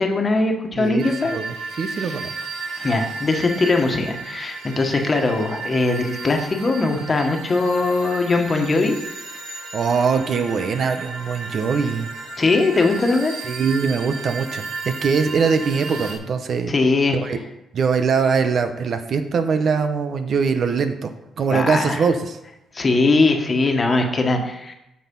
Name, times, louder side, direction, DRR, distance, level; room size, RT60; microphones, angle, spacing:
voice 1, 0.0-1.4 2.0-2.1 2.8-8.9 12.4-13.3 16.7-17.2 21.5-22.0 22.7-24.7, left 3 dB, 30° left, 4 dB, 1.5 m, -20 dB
voice 2, 0.8-2.3 9.7-12.1 13.5-16.7 17.1-17.4 17.7-21.1 21.4-22.4, right 5 dB, 55° right, 8 dB, 0.9 m, -22 dB
sound 1, 1.0-16.2, right 3 dB, 85° right, 1.7 m, -34 dB
8.3 x 6.4 x 5.5 m, 0.87 s
cardioid pair, 90°, 0 cm